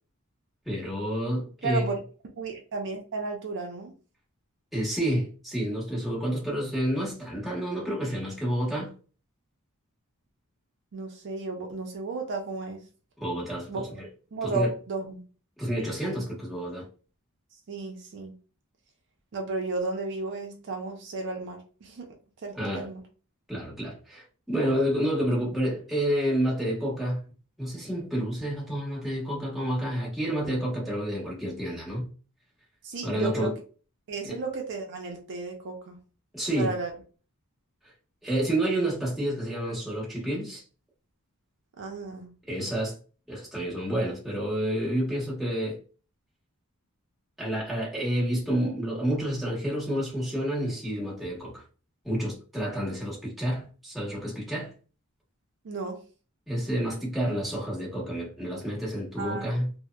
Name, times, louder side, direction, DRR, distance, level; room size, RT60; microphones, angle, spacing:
voice 1, 0.6-1.9 4.7-8.9 13.2-14.1 14.4-14.7 15.6-16.9 22.5-22.9 23.5-27.3 27.6-32.1 33.0-33.6 34.2-34.4 36.3-36.7 38.2-40.6 42.5-43.0 43.3-45.8 47.4-51.6 52.0-54.7 56.5-59.7, equal, ahead, 1.0 m, -29 dB
voice 2, 1.6-1.9 2.4-3.9 10.9-12.8 13.7-14.0 14.3-15.2 17.7-18.3 19.3-22.1 22.4-23.0 32.8-33.5 34.1-36.0 36.6-36.9 41.8-42.3 55.6-56.0 59.2-59.5, right 3 dB, 55° right, 0.5 m, -33 dB
2.7 x 2.0 x 2.2 m
head